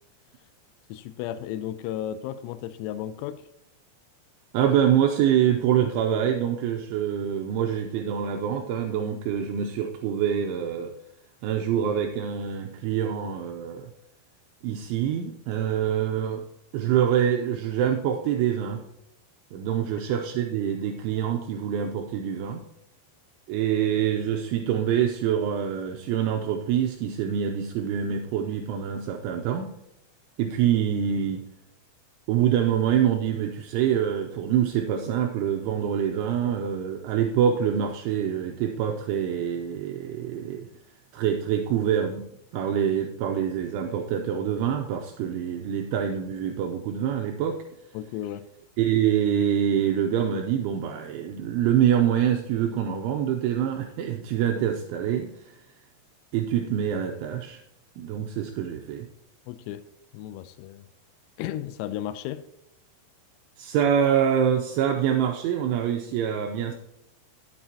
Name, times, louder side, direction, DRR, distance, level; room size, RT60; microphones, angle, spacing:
voice 1, 0.9-3.4 19.8-19.9 47.9-48.5 59.5-59.9 60.1-60.9 61.4-62.4, left 11 dB, 90° left, 11 dB, 3.3 m, -34 dB
voice 2, 4.5-10.9 11.4-13.9 14.6-16.4 16.7-18.8 19.5-22.6 23.5-29.7 30.4-31.4 32.3-40.7 41.1-42.3 42.5-47.6 48.8-55.4 56.3-57.6 58.0-59.1 63.6-66.7, right 9 dB, 80° right, 3 dB, 2.9 m, -25 dB
12.5 x 8.8 x 2.9 m, 0.81 s
omnidirectional pair, 5.9 m